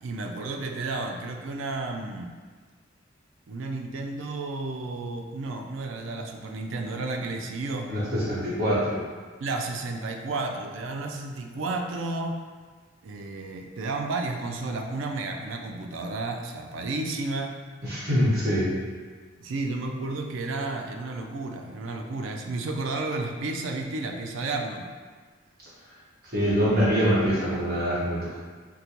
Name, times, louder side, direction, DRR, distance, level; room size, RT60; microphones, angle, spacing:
voice 1, 0.0-2.3 3.5-7.9 9.4-12.5 13.0-17.6 19.4-24.9, right 3 dB, 90° right, 3 dB, 0.4 m, -32 dB
voice 2, 7.9-9.0 17.8-18.7 26.3-28.4, equal, 55° right, -8 dB, 1.0 m, -24 dB
3.8 x 2.2 x 2.9 m, 1.5 s
head